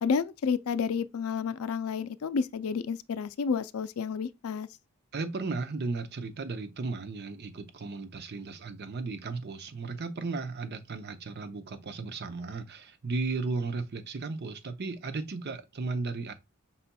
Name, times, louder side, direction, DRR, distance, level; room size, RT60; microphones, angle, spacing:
voice 1, 0.0-4.7, left 6 dB, 80° left, 0.4 m, -30 dB
voice 2, 5.1-16.3, right 3 dB, 50° right, 0.6 m, -35 dB
5.6 x 4.1 x 2.2 m
head